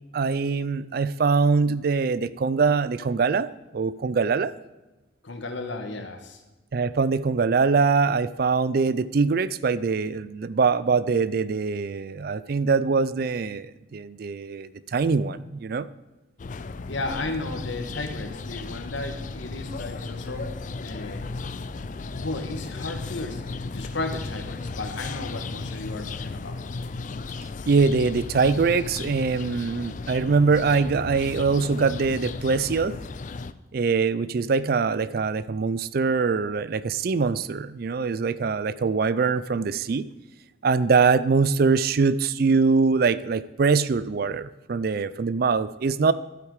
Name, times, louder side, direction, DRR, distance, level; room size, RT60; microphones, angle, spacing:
voice 1, 0.1-4.5 6.7-15.9 27.7-33.0 33.7-40.1 40.6-46.1, right 4 dB, 50° right, 16 dB, 0.4 m, -23 dB
voice 2, 5.2-6.4 16.9-20.5 20.8-21.3 22.1-26.6, left 2 dB, 75° left, 5 dB, 1.4 m, -34 dB
sound 1, 16.4-33.5, left 3 dB, 40° left, 0.4 m, -35 dB
12.0 x 8.4 x 4.8 m, 1.1 s
head